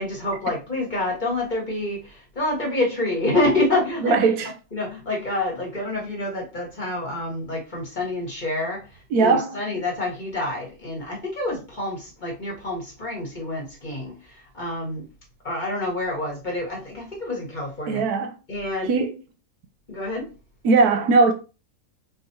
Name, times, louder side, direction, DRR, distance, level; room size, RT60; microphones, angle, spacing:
voice 1, 0.0-4.2 4.7-8.9 9.2-14.1 14.5-15.1 15.4-18.0 18.5-18.9 19.9-20.3, left 2 dB, 30° left, 1.7 m, -27 dB
voice 2, 4.0-4.5 9.1-9.6 17.9-18.4 18.9-19.1 20.6-21.3, right 4 dB, 90° right, 1.2 m, -19 dB
4.5 x 3.3 x 2.8 m
omnidirectional pair, 1.6 m